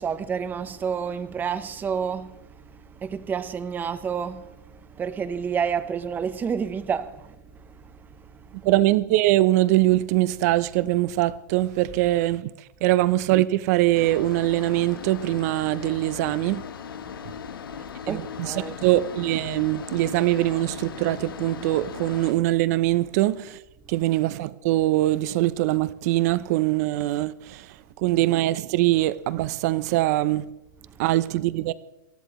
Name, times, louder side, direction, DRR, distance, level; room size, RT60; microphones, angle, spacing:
voice 1, 0.0-8.7 16.9-18.7 23.8-24.0 27.8-28.0 30.8-31.0, right 7 dB, 15° right, 0.9 m, -31 dB
voice 2, 8.6-12.5 12.8-16.6 18.1-18.5 18.8-23.6 23.9-30.4 31.0-31.7, right 16 dB, 50° right, 0.7 m, -22 dB
sound 1, 13.9-22.3, left 8 dB, 90° left, 1.3 m, -38 dB
26.5 x 13.5 x 3.2 m
hypercardioid pair, 145°, 11 cm